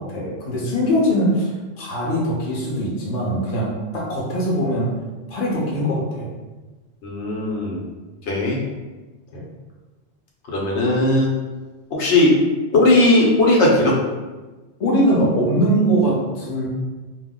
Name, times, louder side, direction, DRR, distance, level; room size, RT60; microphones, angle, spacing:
voice 1, 0.0-4.9 5.3-6.3 9.3-9.4 14.8-16.7, equal, 40° left, -4 dB, 0.7 m, -21 dB
voice 2, 7.0-7.8 8.3-8.6 10.5-11.3 11.9-12.4 12.7-14.0, left 2 dB, 85° left, -3 dB, 1.0 m, -17 dB
2.3 x 2.0 x 3.6 m, 1.2 s
omnidirectional pair, 1.1 m